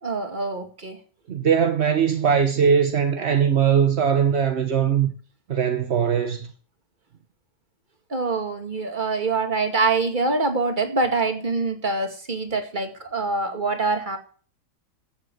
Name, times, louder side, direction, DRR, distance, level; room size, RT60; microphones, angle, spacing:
voice 1, 0.0-1.0 8.1-14.2, right 3 dB, 25° right, 2.1 m, -25 dB
voice 2, 1.3-5.1 5.5-6.5, right 7 dB, 45° right, 0.9 m, -20 dB
15.0 x 7.6 x 7.8 m
omnidirectional pair, 2.2 m